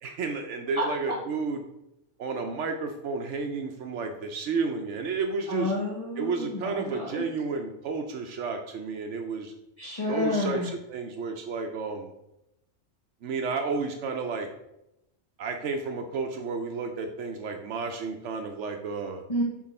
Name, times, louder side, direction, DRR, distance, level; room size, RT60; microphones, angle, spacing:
voice 1, 0.0-1.6 2.2-5.7 6.2-9.5 10.1-12.1 13.2-14.5 15.4-19.2, right 4 dB, 75° right, 5 dB, 0.9 m, -31 dB
voice 2, 5.5-7.2 9.8-10.7 19.3-19.4, left 1 dB, 30° left, -5 dB, 1.0 m, -30 dB
5.9 x 3.9 x 4.2 m, 0.85 s
omnidirectional pair, 1.3 m